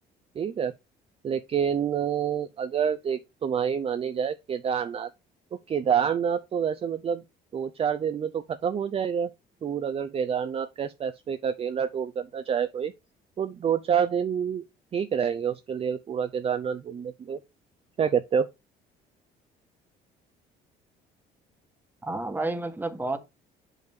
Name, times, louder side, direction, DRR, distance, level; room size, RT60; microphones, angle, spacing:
voice 1, 0.4-0.7 1.2-5.1 5.7-7.2 7.5-9.3 9.6-12.9 13.4-14.6 14.9-17.4 18.0-18.5, right 7 dB, 35° right, 0.5 m, -27 dB
voice 2, 22.0-23.2, right 2 dB, 10° right, 1.3 m, -30 dB
7.6 x 5.5 x 3.5 m
cardioid pair, 110°, 17 cm